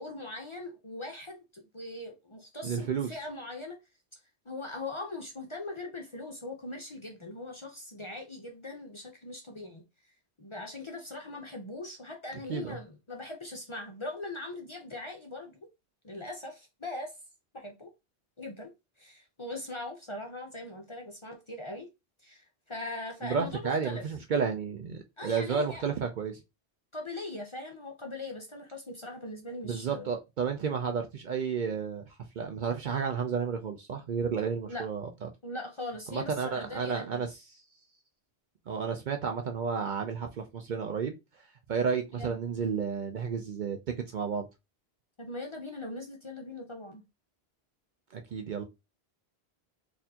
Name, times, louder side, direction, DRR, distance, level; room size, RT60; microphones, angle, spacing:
voice 1, 0.0-3.8 4.5-9.8 10.4-15.6 16.0-17.1 17.5-17.9 18.4-18.7 19.0-21.9 22.2-24.1 25.2-25.9 26.9-30.1 34.6-34.9 35.4-37.3 42.1-42.4 45.2-47.0, left 2 dB, 35° left, 0.6 m, -40 dB
voice 2, 2.6-3.1 12.5-12.8 23.2-26.4 29.6-32.0 32.4-35.3 36.1-37.3 38.7-41.1 41.7-43.8 44.1-44.5 48.1-48.6, right 6 dB, 55° right, 0.6 m, -31 dB
4.2 x 2.6 x 2.8 m
omnidirectional pair, 1.1 m